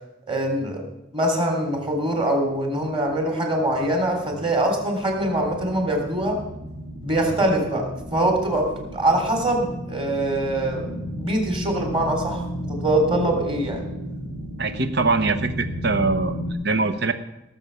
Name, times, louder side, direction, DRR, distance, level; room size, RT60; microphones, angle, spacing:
voice 1, 0.3-0.9 1.1-6.4 7.0-12.4 12.7-13.8, right 1 dB, 30° right, 2 dB, 3.3 m, -23 dB
sound 1, 2.4-16.5, equal, 85° right, 4.6 m, -34 dB
voice 2, 14.6-16.4 16.6-17.1, right 3 dB, 60° right, 9 dB, 1.0 m, -22 dB
17.5 x 7.4 x 6.9 m, 0.96 s
head